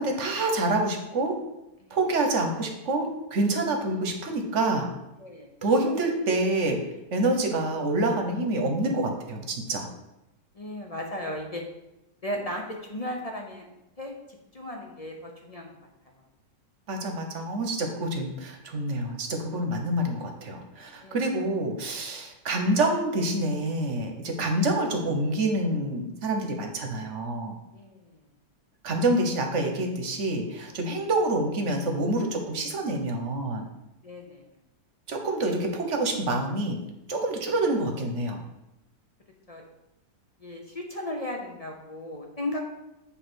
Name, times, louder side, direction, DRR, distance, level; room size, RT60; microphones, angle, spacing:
voice 1, 0.0-1.4 1.9-4.9 5.6-6.8 7.1-9.9 16.9-27.5 28.8-33.6 35.1-36.8 37.1-38.4, right 2 dB, 55° right, 3 dB, 1.2 m, -27 dB
voice 2, 5.2-5.7 10.5-11.6 12.2-13.6 14.0-15.8 21.0-21.4 27.7-28.2 30.7-30.8 34.0-34.5 39.5-39.6 40.4-42.6, left 1 dB, 35° left, 1 dB, 0.6 m, -36 dB
7.8 x 3.3 x 6.2 m, 0.92 s
omnidirectional pair, 1.7 m